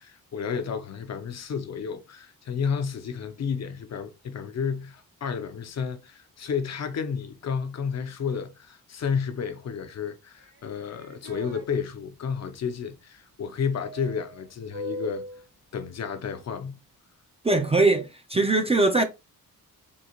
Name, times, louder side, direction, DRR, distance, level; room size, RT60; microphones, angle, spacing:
voice 1, 0.0-15.2 15.7-16.8, left 6 dB, 50° left, 0.5 m, -31 dB
sound 1, 10.4-11.7 13.8-15.5, left 1 dB, 65° right, 1.3 m, -39 dB
voice 2, 17.4-19.0, right 2 dB, 20° right, 0.4 m, -21 dB
3.8 x 2.6 x 2.9 m
wide cardioid pair, 140°, 35 cm